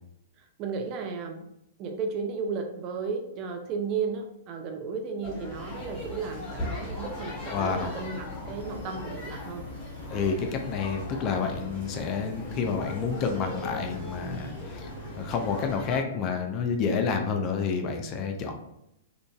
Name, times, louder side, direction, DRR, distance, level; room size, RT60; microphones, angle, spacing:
voice 1, 0.4-1.5 1.8-9.6, right 5 dB, 35° right, 4 dB, 0.4 m, -34 dB
sound 1, 5.2-16.0, left 2 dB, 5° left, 1.3 m, -39 dB
sound 2, 5.5-15.7, left 1 dB, 85° right, 1.1 m, -44 dB
voice 2, 7.5-7.9 10.1-14.9 15.2-18.5, left 5 dB, 35° left, 4 dB, 0.4 m, -29 dB
3.7 x 2.3 x 2.3 m, 0.82 s
figure-of-eight pair, 110°, 0 cm